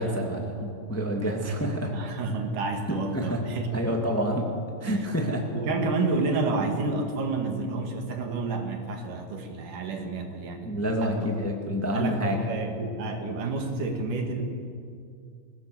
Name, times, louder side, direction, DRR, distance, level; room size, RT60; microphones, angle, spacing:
voice 1, 0.0-1.9 2.9-3.4 3.7-4.5 4.8-5.4 10.6-12.4, equal, 5° left, 1 dB, 1.4 m, -28 dB
voice 2, 1.9-3.7 4.8-5.1 5.5-10.7 11.0-11.1 11.9-14.4, right 3 dB, 65° right, 3 dB, 3.4 m, -29 dB
22.0 x 17.5 x 7.1 m, 2.2 s
omnidirectional pair, 4.1 m